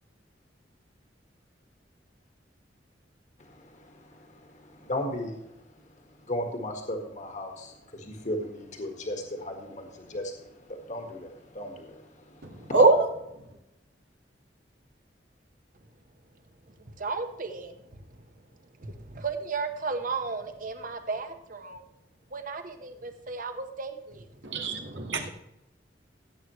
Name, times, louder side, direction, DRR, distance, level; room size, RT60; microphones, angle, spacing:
voice 1, 3.4-5.4 6.3-12.7, left 1 dB, 45° left, 3 dB, 1.7 m, -36 dB
voice 2, 12.7-13.1 24.4-25.3, right 3 dB, 90° right, 2 dB, 1.9 m, -22 dB
voice 3, 16.8-18.2 18.8-21.8 22.3-24.3, right 4 dB, 50° right, 7 dB, 1.3 m, -35 dB
16.0 x 8.3 x 3.2 m, 0.87 s
head